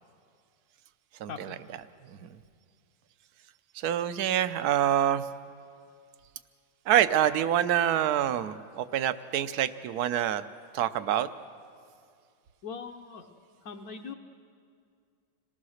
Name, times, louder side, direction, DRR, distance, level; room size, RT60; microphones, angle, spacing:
voice 1, 1.2-1.8 2.1-2.4 3.7-5.2 6.9-10.4 10.7-11.3, right 10 dB, 65° right, 12 dB, 1.1 m, -26 dB
voice 2, 12.6-13.3 13.6-14.1, left 5 dB, 55° left, 2 dB, 1.3 m, -40 dB
26.5 x 19.0 x 6.4 m, 2.3 s
omnidirectional pair, 2.1 m